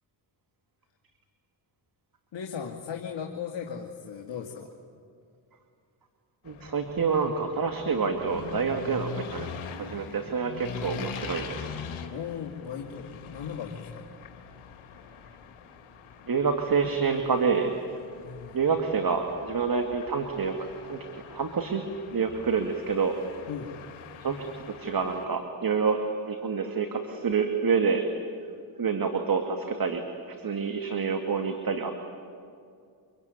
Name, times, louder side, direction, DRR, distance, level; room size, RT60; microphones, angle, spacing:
voice 1, 2.3-4.7 12.1-14.0 18.2-18.6 23.5-23.7, left 7 dB, 60° left, 1 dB, 2.4 m, -37 dB
sound 1, 6.4-25.2, left 6 dB, 80° left, 2.6 m, -43 dB
voice 2, 6.5-9.5 9.8-11.7 16.3-17.7 18.5-20.5 20.9-21.8 22.1-23.1 24.2-24.4 24.8-26.0 26.3-28.0 28.8-30.0 30.4-31.9, right 5 dB, 45° right, 5 dB, 2.4 m, -27 dB
25.5 x 24.0 x 9.6 m, 2.3 s
supercardioid pair, 50°, 48 cm